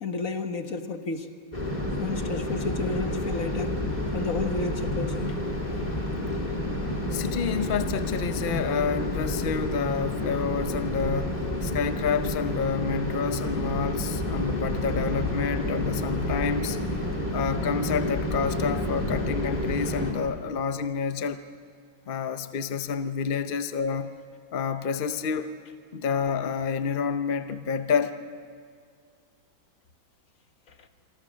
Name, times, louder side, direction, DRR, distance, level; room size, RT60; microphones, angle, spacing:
voice 1, 0.0-1.3 1.9-3.8 4.1-5.4, left 3 dB, 45° left, 6 dB, 1.6 m, -31 dB
sound 1, 1.5-20.1, left 1 dB, 20° left, 3.1 m, -29 dB
voice 2, 7.1-16.8 17.3-21.4 22.1-24.2 24.5-25.6 25.9-28.2, left 6 dB, 75° left, 10 dB, 0.5 m, -29 dB
26.5 x 24.5 x 6.4 m, 2.2 s
omnidirectional pair, 2.1 m